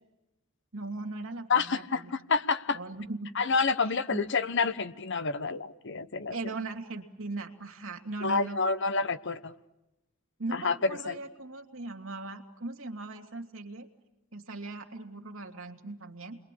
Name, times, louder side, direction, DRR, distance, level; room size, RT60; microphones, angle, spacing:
voice 1, 0.7-2.1 2.7-3.3 3.9-4.3 6.3-8.6 10.4-13.9 14.3-16.4, right 2 dB, 65° right, 4 dB, 2.7 m, -39 dB
voice 2, 1.5-2.8 3.4-6.3 8.2-9.5 10.5-10.8 11.0-11.2, left 4 dB, 55° left, 13 dB, 1.1 m, -28 dB
30.0 x 22.0 x 8.6 m, 1.0 s
head